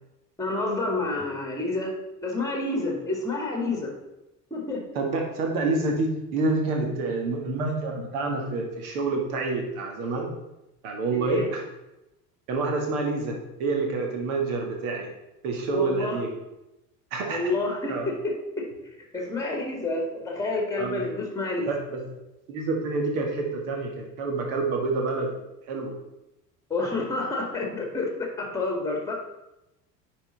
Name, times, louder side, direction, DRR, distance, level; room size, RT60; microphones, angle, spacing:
voice 1, 0.4-1.9 2.2-3.9 4.5-4.8 11.1-11.5 15.7-16.2 17.3-18.7 19.1-21.7 26.7-29.1, left 2 dB, 5° left, 1 dB, 2.0 m, -29 dB
voice 2, 5.0-10.3 10.8-11.6 12.5-15.1 15.4-16.3 17.1-17.4 17.9-18.1 20.8-21.0 21.7-22.0 22.5-25.3 25.7-25.9, right 3 dB, 60° right, 2 dB, 1.8 m, -28 dB
9.6 x 4.4 x 4.0 m, 0.95 s
figure-of-eight pair, 65°, 47 cm